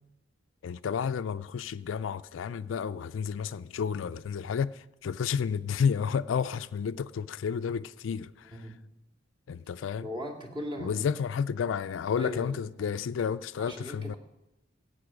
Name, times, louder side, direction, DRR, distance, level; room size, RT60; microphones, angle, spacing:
voice 1, 0.6-8.5 9.5-10.1 10.8-14.2, left 7 dB, 85° left, 0.4 m, -31 dB
voice 2, 8.4-8.8 10.0-11.0 12.2-13.3 13.6-14.2, equal, 25° right, 2.1 m, -39 dB
15.0 x 8.8 x 5.0 m
head